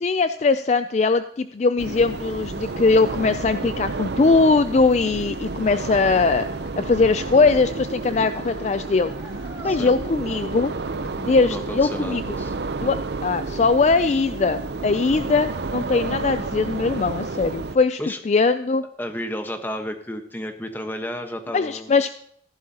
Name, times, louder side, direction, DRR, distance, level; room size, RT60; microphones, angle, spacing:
voice 1, 0.0-6.4 6.8-9.1 9.6-10.7 11.2-12.4 12.8-18.0 18.3-18.8 21.5-22.1, left 4 dB, 40° left, 11 dB, 0.3 m, -20 dB
Idling, 1.8-11.4, left 1 dB, 85° left, 1.6 m, -47 dB
sound 1, 1.8-17.8, right 3 dB, 70° right, 0.6 m, -31 dB
sound 2, 9.0-10.5, right 2 dB, 15° right, 2.2 m, -42 dB
voice 2, 9.6-9.9 11.5-12.5 18.0-18.2 19.0-21.9, equal, 10° left, 6 dB, 1.2 m, -32 dB
15.0 x 11.5 x 2.9 m, 0.67 s
head